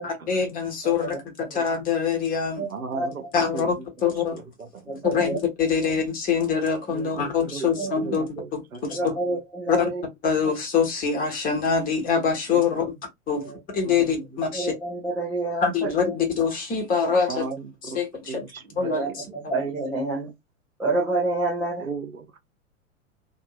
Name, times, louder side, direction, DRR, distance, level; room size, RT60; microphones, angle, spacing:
voice 1, 0.0-2.6 3.3-3.7 4.0-4.4 5.0-8.3 8.5-8.6 8.9-9.0 9.7-9.9 10.2-12.8 13.3-13.4 13.7-14.7 15.6-17.4 17.9-18.4 18.8-19.5, left 6 dB, 20° left, 1.1 m, -24 dB
voice 2, 0.8-1.2 1.5-1.6 2.6-2.7 2.9-3.1 4.9-5.4 5.8-5.9 7.8-7.9 8.9-10.0 13.3-13.5 14.5-16.1 18.8-20.3 20.8-21.8, right 2 dB, 5° right, 0.3 m, -28 dB
voice 3, 2.7-3.3 3.5-3.9 4.3-5.1 6.9-7.7 8.0-9.2 12.5-12.9 13.4-13.5 13.8-14.5 17.3-18.0 18.3-19.1 21.8-22.4, right 5 dB, 85° right, 0.7 m, -37 dB
2.7 x 2.5 x 2.4 m
figure-of-eight pair, 100°, 41 cm